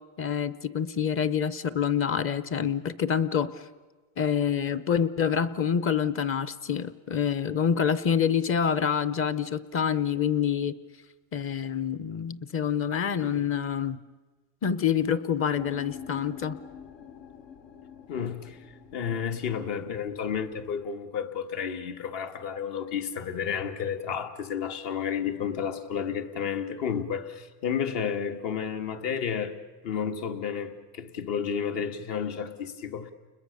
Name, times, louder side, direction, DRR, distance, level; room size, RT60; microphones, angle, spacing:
voice 1, 0.2-3.6 4.2-10.7 11.3-14.0 14.6-16.6, left 7 dB, 25° left, 0.9 m, -27 dB
sound 1, 15.5-20.9, left 8 dB, 75° left, 3.3 m, -46 dB
voice 2, 18.1-18.6 18.9-29.5 29.8-33.1, left 7 dB, 55° left, 2.1 m, -31 dB
30.0 x 21.5 x 6.8 m
supercardioid pair, 140°, 48 cm